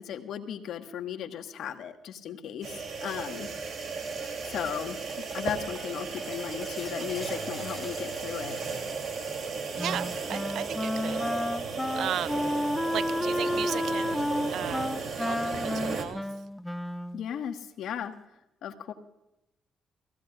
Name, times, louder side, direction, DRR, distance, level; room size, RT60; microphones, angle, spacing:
voice 1, 0.0-3.5 4.5-5.0 5.3-8.6 17.1-18.1 18.6-18.9, left 9 dB, 75° left, 1.5 m, -36 dB
sound 1, 2.6-16.0, right 4 dB, 55° right, 2.8 m, -35 dB
sound 2, 3.9-12.4 12.7-13.1 13.5-14.3 15.7-15.8 17.0-17.1, left 4 dB, 30° left, 2.6 m, -51 dB
voice 2, 9.7-11.2 11.9-12.4 12.9-14.3 14.5-16.2, right 10 dB, 75° right, 0.4 m, -36 dB
Wind instrument woodwind instrument, 9.8-17.3, left 1 dB, 10° left, 0.4 m, -31 dB
24.5 x 15.0 x 2.4 m
cardioid pair, 90°, 0 cm